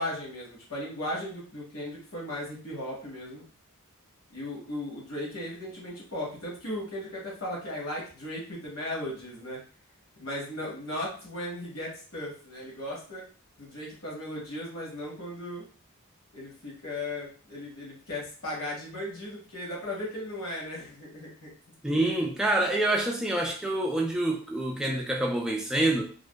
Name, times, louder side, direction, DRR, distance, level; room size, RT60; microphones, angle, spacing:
voice 1, 0.0-3.4 4.3-9.6 10.2-13.2 13.6-15.7 16.3-21.5, left 1 dB, 70° left, 1.2 m, -36 dB
voice 2, 21.8-26.0, right 1 dB, 5° right, 0.3 m, -27 dB
2.5 x 2.2 x 2.2 m
head